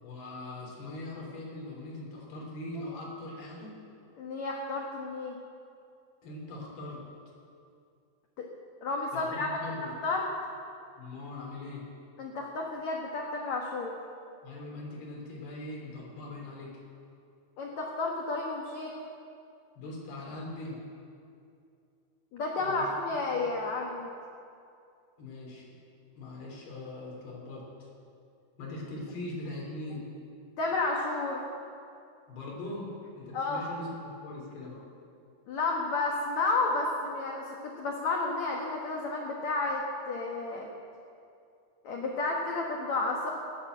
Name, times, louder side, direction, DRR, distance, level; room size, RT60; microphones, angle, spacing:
voice 1, 0.0-3.8 6.2-7.0 9.1-9.9 11.0-11.9 14.4-16.8 19.8-20.8 22.6-22.9 23.3-23.5 25.2-25.7 26.2-27.9 28.6-30.1 32.3-34.8, left 2 dB, 60° left, -3 dB, 5.3 m, -41 dB
voice 2, 4.2-5.3 8.4-8.5 8.8-10.2 12.2-13.9 17.6-18.9 22.3-24.1 30.6-31.4 33.3-33.6 35.5-40.7 41.8-43.3, left 3 dB, 85° left, -1 dB, 1.6 m, -31 dB
18.0 x 8.9 x 7.8 m, 2.5 s
omnidirectional pair, 5.4 m